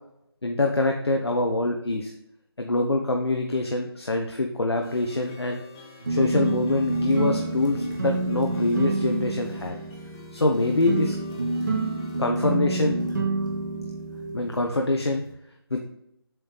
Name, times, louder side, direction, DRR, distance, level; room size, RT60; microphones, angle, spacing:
voice 1, 0.4-2.1 2.6-5.6 6.1-9.8 10.3-11.2 12.2-13.0 14.3-15.2 15.7-15.8, left 2 dB, 80° left, 3 dB, 0.8 m, -24 dB
sound 1, 4.8-12.2, left 3 dB, 10° left, 0.7 m, -47 dB
sound 2, 6.0-15.3, right 3 dB, 45° right, 1.5 m, -29 dB
7.7 x 3.3 x 4.0 m, 0.78 s
figure-of-eight pair, 160°, 13 cm